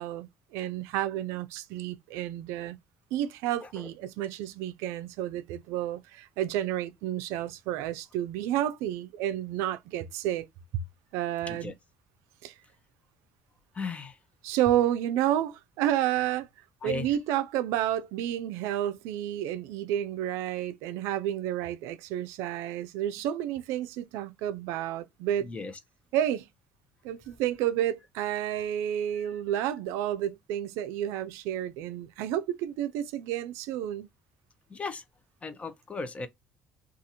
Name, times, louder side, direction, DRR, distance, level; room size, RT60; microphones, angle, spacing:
voice 1, 0.0-2.8 3.1-10.4 11.1-11.7 12.4-12.5 14.4-16.5 16.8-25.5 26.1-26.5 27.0-34.1, right 11 dB, 90° right, 0.3 m, -30 dB
voice 2, 3.6-3.9 11.5-11.7 13.7-14.2 16.8-17.2 25.4-25.8 29.2-29.4 34.7-35.0 35.4-36.3, left 3 dB, 25° left, 0.6 m, -37 dB
2.7 x 2.4 x 2.7 m
cardioid pair, 95°, 5 cm